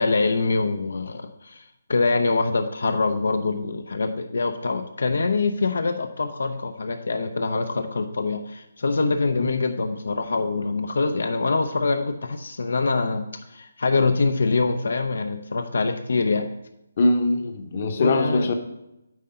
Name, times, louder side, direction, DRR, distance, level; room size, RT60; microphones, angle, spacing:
voice 1, 0.0-1.6 1.9-16.5 18.0-18.5, left 3 dB, 75° left, 7 dB, 0.7 m, -24 dB
voice 2, 17.0-18.5, left 2 dB, 40° left, 5 dB, 0.9 m, -22 dB
9.3 x 3.8 x 5.6 m, 0.86 s
hypercardioid pair, 170°, 0 cm